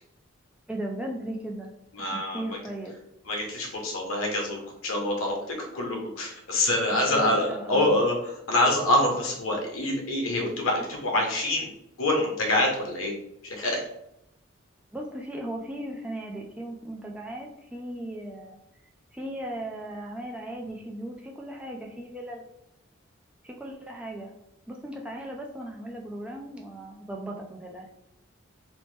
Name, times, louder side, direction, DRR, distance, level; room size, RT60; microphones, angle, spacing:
voice 1, 0.7-1.7 2.0-2.9 6.9-8.0 14.9-18.6 19.1-22.4 23.4-24.3 24.7-27.9, right 1 dB, 5° right, -1 dB, 0.3 m, -37 dB
voice 2, 2.0-2.4 3.3-11.7 12.0-13.1 13.4-13.8, left 1 dB, 85° left, 1 dB, 0.8 m, -26 dB
2.8 x 2.1 x 3.1 m, 0.81 s
head